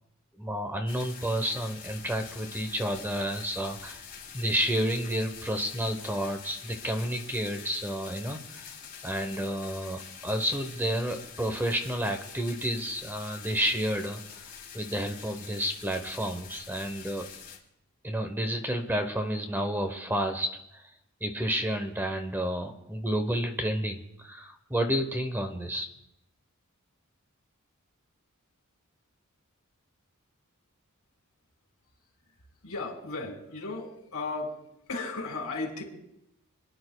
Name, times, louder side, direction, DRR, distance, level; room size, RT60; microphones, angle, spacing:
voice 1, 0.4-4.0 4.3-8.6 9.0-14.4 14.7-17.3 18.0-20.9 21.2-25.9, equal, 10° right, 5 dB, 0.8 m, -30 dB
sound 1, 0.9-17.6, left 7 dB, 40° left, 2.6 m, -46 dB
voice 2, 32.6-34.6 34.9-35.8, left 3 dB, 75° left, 0 dB, 3.1 m, -35 dB
27.0 x 10.5 x 2.3 m, 0.83 s
head